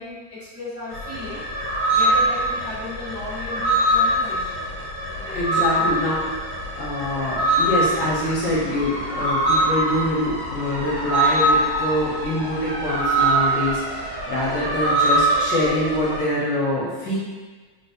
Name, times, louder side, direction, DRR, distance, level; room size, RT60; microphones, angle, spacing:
voice 1, 0.0-1.4 1.9-4.8 5.2-5.9, left 2 dB, 10° right, -13 dB, 1.2 m, -35 dB
sound 1, 0.9-16.2, right 1 dB, 50° right, 1.7 m, -23 dB
voice 2, 5.3-6.2 6.8-17.2, left 1 dB, 65° left, -6 dB, 1.5 m, -25 dB
3.9 x 3.9 x 2.6 m, 1.4 s
omnidirectional pair, 2.2 m